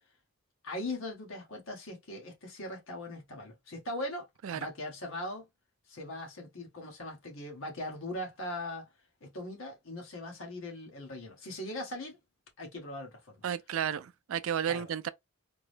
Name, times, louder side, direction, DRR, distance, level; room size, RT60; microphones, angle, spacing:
voice 1, 0.6-4.3 4.5-5.4 5.9-8.9 9.2-12.2 12.6-13.4 14.7-14.9, left 1 dB, 70° left, 1.3 m, -40 dB
voice 2, 13.4-15.1, right 8 dB, 75° right, 0.4 m, -32 dB
3.6 x 2.0 x 3.2 m
head